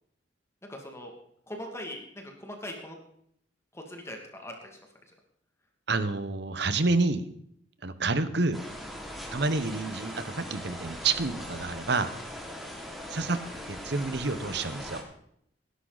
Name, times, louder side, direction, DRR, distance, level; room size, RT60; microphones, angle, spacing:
voice 1, 0.7-1.1 1.5-3.0 3.7-4.8 13.4-13.6, left 1 dB, 15° left, 2 dB, 2.2 m, -41 dB
voice 2, 5.9-7.2 7.8-8.6 9.3-12.1 13.1-13.4 13.7-15.0, right 3 dB, 65° right, 12 dB, 1.1 m, -28 dB
sound 1, 8.5-15.0, equal, ahead, 2.9 m, -40 dB
18.0 x 11.5 x 4.0 m, 0.70 s
head